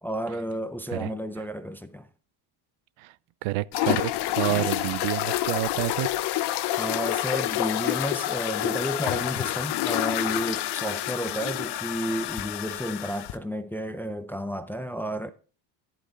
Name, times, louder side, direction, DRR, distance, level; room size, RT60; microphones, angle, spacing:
voice 1, 0.0-2.1 4.5-4.7 6.8-15.3, equal, 5° left, 0.4 m, -32 dB
voice 2, 3.4-6.2, right 18 dB, 75° right, 0.7 m, -29 dB
sound 1, 3.7-13.3, left 15 dB, 55° left, 0.7 m, -28 dB
11.5 x 10.0 x 3.8 m
cardioid pair, 140°, 48 cm